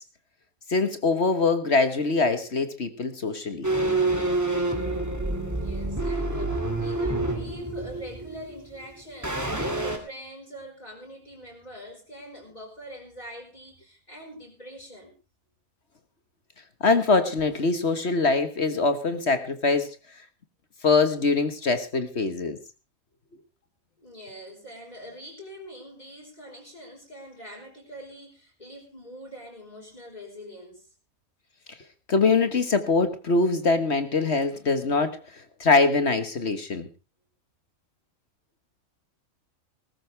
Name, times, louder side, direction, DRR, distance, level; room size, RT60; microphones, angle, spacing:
voice 1, 0.7-3.7 16.8-19.9 20.8-22.6 32.1-35.2 35.6-36.9, left 3 dB, 50° left, 10 dB, 1.7 m, -23 dB
sound 1, 3.6-8.8 9.2-10.0, right 2 dB, 10° right, 2.4 m, -27 dB
voice 2, 5.4-15.1 24.0-30.9, equal, 30° left, -2 dB, 5.0 m, -43 dB
19.5 x 14.0 x 3.3 m, 0.31 s
omnidirectional pair, 1.5 m